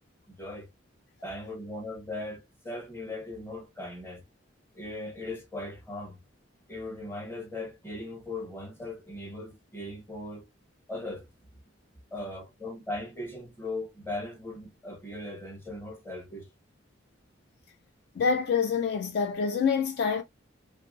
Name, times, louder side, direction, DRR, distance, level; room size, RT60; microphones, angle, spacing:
voice 1, 0.3-0.7 1.2-4.2 4.7-6.2 6.7-10.5 10.9-11.3 12.1-16.5, left 2 dB, 10° left, 0.8 m, -38 dB
voice 2, 18.2-20.2, left 6 dB, 55° left, 0.3 m, -26 dB
2.9 x 2.6 x 2.2 m
head